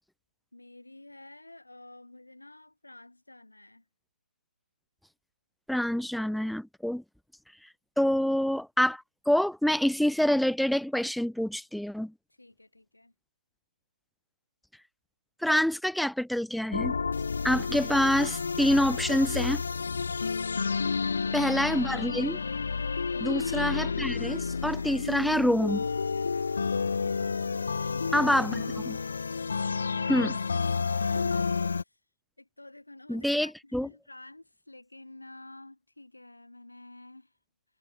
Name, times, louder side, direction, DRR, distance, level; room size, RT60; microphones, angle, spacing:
voice 1, 0.5-3.8 12.4-13.1 20.7-21.2 22.8-23.2 24.7-25.1 27.4-29.1 29.9-30.3 30.9-32.0 32.4-37.4, left 2 dB, 75° left, 7.5 m, -50 dB
voice 2, 5.7-7.0 8.0-12.1 15.4-17.0 17.4-19.6 21.3-22.4 23.2-25.8 28.1-29.0 30.1-30.3 33.1-33.9, equal, ahead, 0.3 m, -26 dB
sound 1, 16.7-31.8, left 5 dB, 50° left, 0.7 m, -30 dB
figure-of-eight pair, 150°, 0 cm